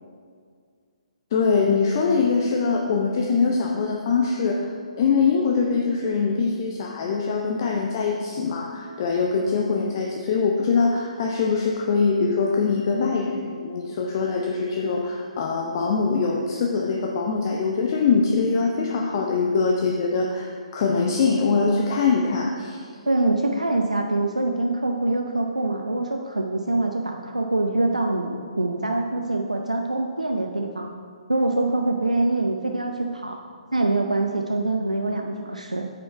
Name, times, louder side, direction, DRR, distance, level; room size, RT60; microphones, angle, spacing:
voice 1, 1.3-4.6 5.0-22.9, left 4 dB, 35° left, 1 dB, 0.7 m, -23 dB
voice 2, 23.1-30.9 31.3-33.4 33.7-35.9, right 2 dB, 80° right, 2 dB, 0.6 m, -24 dB
9.0 x 6.3 x 4.5 m, 2.1 s
figure-of-eight pair, 130°, 4 cm